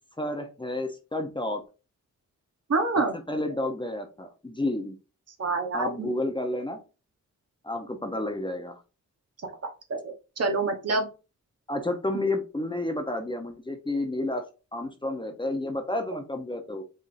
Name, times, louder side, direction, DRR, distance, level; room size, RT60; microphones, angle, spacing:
voice 1, 0.2-1.6 3.3-5.0 5.7-6.8 7.6-8.8 11.7-14.4 14.7-16.8, left 1 dB, 15° left, 4 dB, 0.9 m, -30 dB
voice 2, 2.7-3.1 5.4-6.1 9.6-11.1, right 3 dB, 55° right, 4 dB, 1.3 m, -27 dB
5.3 x 3.6 x 2.6 m, 0.31 s
wide cardioid pair, 105°, 30 cm